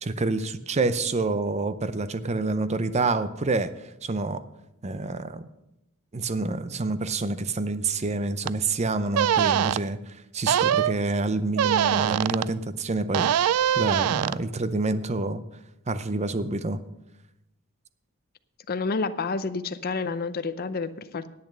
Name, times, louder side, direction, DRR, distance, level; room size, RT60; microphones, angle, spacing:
voice 1, 0.0-3.7 4.0-4.4 4.8-5.5 6.1-13.5 13.8-15.4 15.9-16.8, right 3 dB, 30° right, 13 dB, 0.6 m, -27 dB
sound 1, 8.5-8.6 9.1-9.8 10.5-10.9 11.6-12.5 13.1-14.4, right 10 dB, 80° right, 0.3 m, -23 dB
voice 2, 18.7-21.3, left 4 dB, 45° left, 12 dB, 0.6 m, -29 dB
10.5 x 8.4 x 6.6 m, 0.89 s
head